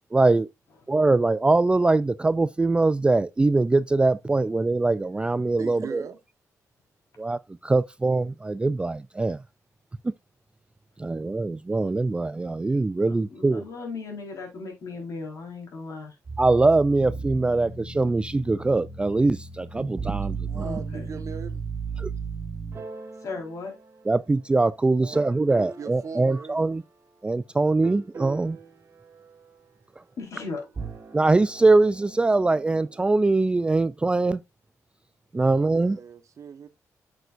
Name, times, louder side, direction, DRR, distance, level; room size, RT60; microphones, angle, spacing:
voice 1, 0.1-0.5 0.9-6.0 7.2-9.4 11.0-13.6 16.4-20.7 22.0-22.1 24.1-26.8 27.2-28.6 31.1-34.4 35.3-36.0, right 3 dB, 15° right, 0.3 m, -22 dB
voice 2, 5.6-6.2 20.1-21.6 25.0-25.3 25.6-26.7 35.7-36.7, right 6 dB, 55° right, 1.1 m, -39 dB
voice 3, 13.1-16.2 20.6-21.1 23.2-23.7 30.2-30.7, left 4 dB, 60° left, 4.1 m, -36 dB
sound 1, 16.3-24.6 25.1-26.0 27.8-29.5 30.6-33.2, right 5 dB, 40° right, 2.0 m, -37 dB
7.9 x 6.8 x 2.5 m
cardioid pair, 105°, 6 cm